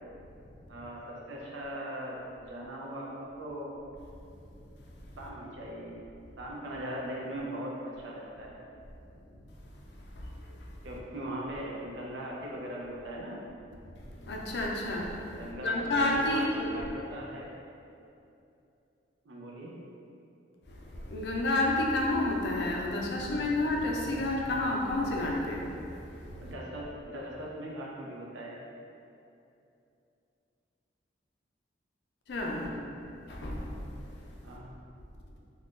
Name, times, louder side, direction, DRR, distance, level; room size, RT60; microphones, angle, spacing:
voice 1, 0.7-3.1 3.4-3.7 5.2-5.9 6.4-8.6 10.8-13.4 15.4-17.5 19.2-19.7 26.4-28.6 32.6-32.8 34.4-34.8, right 1 dB, 85° right, -3 dB, 0.5 m, -40 dB
voice 2, 14.3-15.1 15.4-16.7 21.1-25.6 32.3-32.6 33.3-33.7, left 2 dB, 65° left, -1 dB, 0.4 m, -29 dB
2.5 x 2.2 x 3.5 m, 2.7 s
head